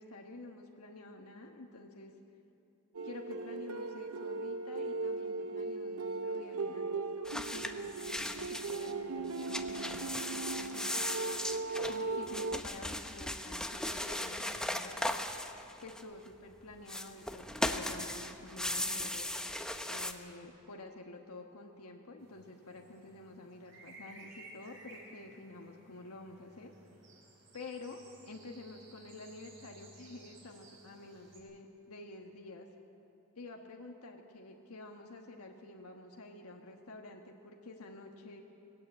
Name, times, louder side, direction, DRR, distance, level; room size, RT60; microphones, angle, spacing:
voice 1, 0.0-2.1 3.0-11.0 11.9-15.2 15.8-17.4 17.7-19.3 19.8-26.7 27.5-32.7 33.4-38.4, left 2 dB, 70° left, 2 dB, 1.4 m, -49 dB
sound 1, 2.9-12.6, right 3 dB, 75° right, 0.7 m, -38 dB
sound 2, 7.2-8.9 9.3-16.3 16.8-20.1, left 1 dB, 5° left, 0.8 m, -38 dB
sound 3, 22.2-31.4, right 2 dB, 60° right, 4.8 m, -57 dB
20.0 x 15.5 x 8.9 m, 2.8 s
head